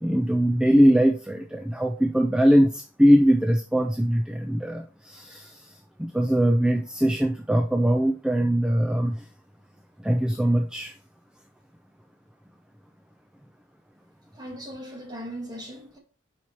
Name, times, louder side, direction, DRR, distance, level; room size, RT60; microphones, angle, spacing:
voice 1, 0.0-9.3 10.0-10.9, equal, 5° right, 0.4 m, -22 dB
voice 2, 14.3-16.0, equal, 20° right, 2.0 m, -38 dB
5.9 x 4.5 x 4.2 m
head